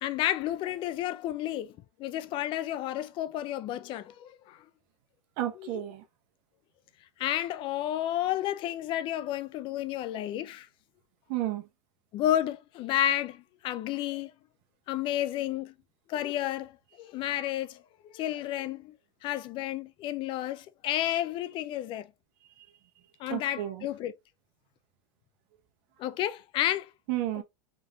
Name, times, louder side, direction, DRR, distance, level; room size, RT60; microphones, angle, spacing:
voice 1, 0.0-1.7 2.0-4.6 7.2-10.7 12.1-14.3 14.9-15.7 16.1-18.9 19.2-22.1 23.2-24.1 26.0-26.9 27.4-27.5, left 13 dB, 40° left, 0.5 m, -31 dB
voice 2, 5.4-6.0 11.3-11.6 22.6-22.7 23.3-23.9 27.1-27.4, right 13 dB, 55° right, 1.1 m, -32 dB
4.5 x 3.2 x 2.7 m
supercardioid pair, 130°, 14 cm